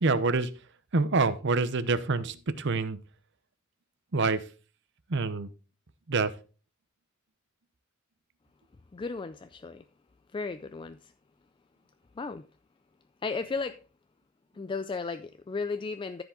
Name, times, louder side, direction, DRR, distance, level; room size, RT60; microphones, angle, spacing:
voice 1, 0.0-0.5 0.9-3.0 4.1-4.4 5.1-5.5 6.1-6.3, right 3 dB, 60° right, 0.8 m, -26 dB
voice 2, 8.9-9.8 10.3-11.1 12.2-12.4 13.2-13.8 14.5-16.2, left 4 dB, 25° left, 0.3 m, -34 dB
13.5 x 5.0 x 3.8 m
head